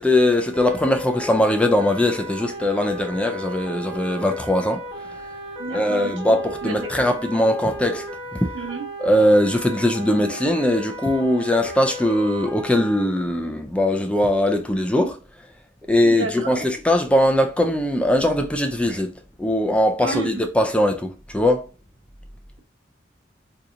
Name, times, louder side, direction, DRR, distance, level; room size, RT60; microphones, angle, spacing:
voice 1, 0.0-4.8 5.7-8.1 8.3-8.5 9.0-15.2 15.9-19.1 19.4-21.7, left 1 dB, 5° left, 0.3 m, -20 dB
sound 1, 0.5-13.0, right 1 dB, 25° right, 1.3 m, -35 dB
voice 2, 5.6-7.1 8.5-8.9 16.0-16.6 20.0-20.3, right 3 dB, 90° right, 1.1 m, -31 dB
3.8 x 2.7 x 2.5 m
head